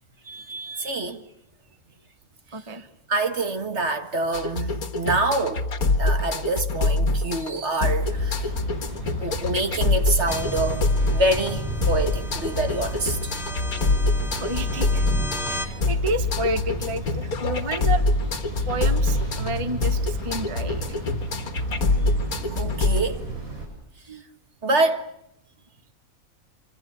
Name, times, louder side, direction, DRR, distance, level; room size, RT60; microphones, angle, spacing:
voice 1, 0.3-1.2 3.1-5.7 6.0-8.5 9.2-13.3 15.4-15.5 22.4-23.3 24.6-25.1, right 2 dB, 50° right, 2.0 m, -26 dB
voice 2, 2.5-2.9 14.3-15.1 15.5-18.0 18.6-21.0 24.1-24.2, right 1 dB, 20° right, 1.2 m, -30 dB
sound 1, 4.3-23.0, left 3 dB, 80° left, 2.2 m, -25 dB
sound 2, 8.0-23.7, right 2 dB, 70° right, 7.8 m, -34 dB
sound 3, 10.3-15.7, equal, ahead, 2.1 m, -33 dB
26.5 x 26.0 x 6.9 m
omnidirectional pair, 1.5 m